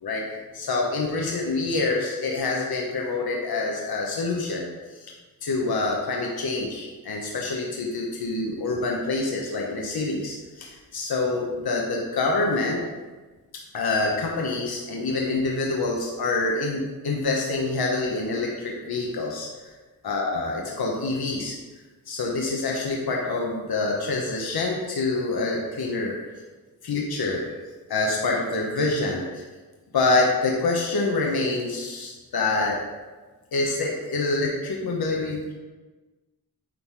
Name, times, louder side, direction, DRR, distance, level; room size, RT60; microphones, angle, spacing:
voice 1, 0.0-5.1 5.4-12.8 13.7-19.5 20.0-21.6 22.1-26.3 26.8-27.4 27.9-29.3 29.9-32.8 33.5-35.5, left 3 dB, 85° left, -1 dB, 1.1 m, -26 dB
9.3 x 4.0 x 4.7 m, 1.3 s
cardioid pair, 60°, 36 cm